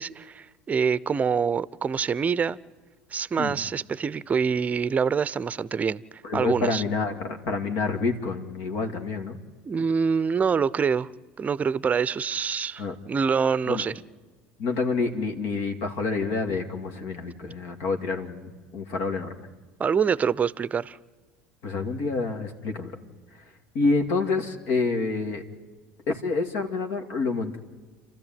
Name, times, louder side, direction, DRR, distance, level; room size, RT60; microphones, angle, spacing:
voice 1, 0.0-2.6 3.1-6.0 6.3-6.8 9.7-11.1 11.4-14.0 19.8-21.0, right 6 dB, 30° right, 0.6 m, -25 dB
voice 2, 6.2-9.4 12.8-12.9 13.7-13.8 14.6-19.5 21.6-23.0 23.7-25.4 26.1-27.6, left 3 dB, 65° left, 2.3 m, -28 dB
28.5 x 13.5 x 9.3 m
hypercardioid pair, 75°, 5 cm